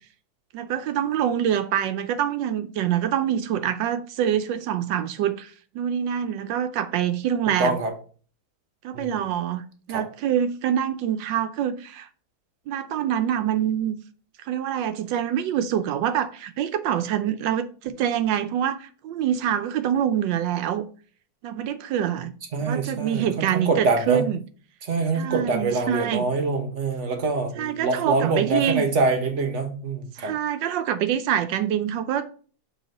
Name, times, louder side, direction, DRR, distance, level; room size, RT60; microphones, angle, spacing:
voice 1, 0.5-7.8 8.8-9.6 9.9-12.1 12.7-14.0 14.4-20.9 21.4-22.3 22.7-24.4 25.1-26.2 27.6-28.9 30.1-32.3, right 10 dB, 75° right, 1.2 m, -25 dB
voice 2, 7.6-7.9 8.9-9.2 9.9-10.0 22.5-24.2 24.8-30.3, right 3 dB, 55° right, 0.9 m, -25 dB
6.1 x 4.2 x 5.2 m
omnidirectional pair, 2.2 m